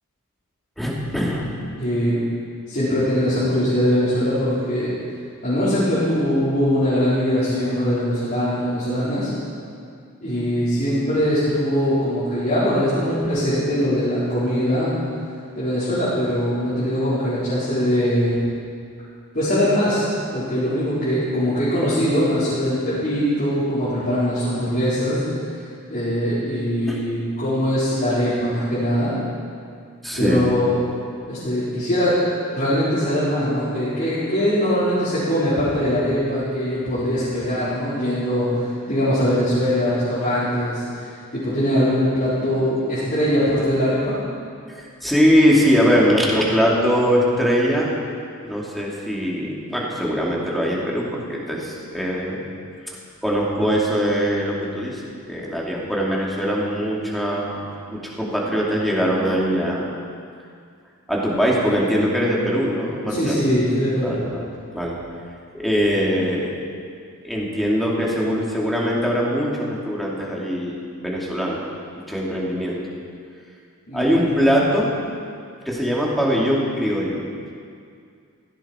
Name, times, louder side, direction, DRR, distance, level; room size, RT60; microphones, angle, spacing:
voice 1, 0.8-1.5 26.8-27.0 30.0-30.5 44.8-47.9 48.4-52.4 52.9-53.0 53.2-55.0 55.3-59.9 61.1-63.4 64.0-65.0 65.5-66.5 67.2-71.6 72.1-72.8 73.9-74.9 75.7-77.2, equal, ahead, -4 dB, 2.5 m, -21 dB
voice 2, 1.8-2.2 2.7-4.9 5.4-9.3 10.2-14.9 15.5-18.4 19.3-20.1 20.3-25.2 25.9-29.1 30.1-30.7 31.3-32.2 32.5-44.2 63.1-64.2 73.9-74.1, equal, 40° left, -13 dB, 4.1 m, -21 dB
16.0 x 15.5 x 4.4 m, 2.3 s
head